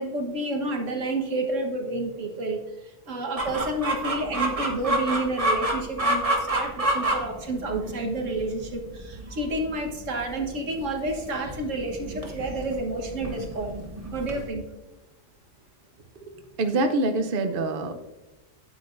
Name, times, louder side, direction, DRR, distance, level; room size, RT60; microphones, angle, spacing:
voice 1, 0.0-2.6 3.1-13.8 14.1-14.7, right 2 dB, 80° right, 2 dB, 1.6 m, -30 dB
Chicken rooster, 3.4-14.5, right 1 dB, 30° right, 1.2 m, -29 dB
voice 2, 16.6-18.0, right 2 dB, 55° right, 7 dB, 0.8 m, -25 dB
9.2 x 8.8 x 2.5 m, 1.1 s
omnidirectional pair, 1.3 m